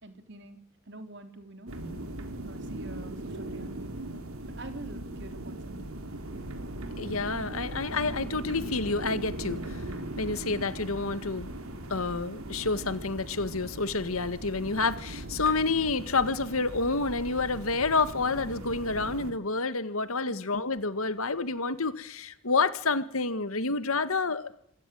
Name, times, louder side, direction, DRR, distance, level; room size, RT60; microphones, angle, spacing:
voice 1, 0.0-0.6 0.9-1.7 2.4-4.0 4.6-6.0, right 2 dB, 55° right, 8 dB, 3.7 m, -46 dB
sound 1, 1.7-19.3, right 1 dB, 85° right, 3.6 m, -39 dB
voice 2, 7.0-9.8 10.2-11.5 11.9-24.6, left 3 dB, 85° left, 13 dB, 1.9 m, -29 dB
27.0 x 15.0 x 9.3 m, 0.70 s
head